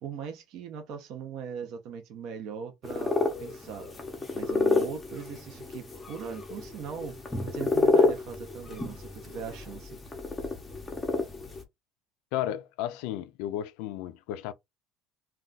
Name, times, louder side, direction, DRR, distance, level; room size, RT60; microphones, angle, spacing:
voice 1, 0.0-3.9 4.3-7.2 7.4-10.0, right 6 dB, 50° right, 0.6 m, -40 dB
sound 1, 2.8-11.6, left 3 dB, 10° left, 0.6 m, -30 dB
voice 2, 12.3-14.5, left 12 dB, 75° left, 0.3 m, -33 dB
2.3 x 2.3 x 3.8 m
cardioid pair, 165°, 0 cm